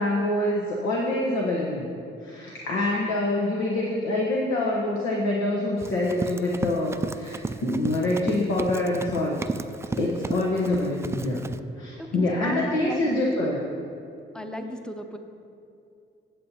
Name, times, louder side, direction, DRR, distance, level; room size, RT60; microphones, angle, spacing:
voice 1, 0.0-1.9 2.2-9.4 10.0-11.4 11.8-13.6, left 1 dB, 85° left, -3 dB, 1.2 m, -26 dB
Run, 5.8-11.6, right 3 dB, 15° right, 0.3 m, -34 dB
voice 2, 12.2-13.2 14.3-15.2, left 1 dB, 5° left, 5 dB, 0.8 m, -34 dB
16.5 x 7.5 x 2.8 m, 2.5 s
cardioid pair, 90°, 20 cm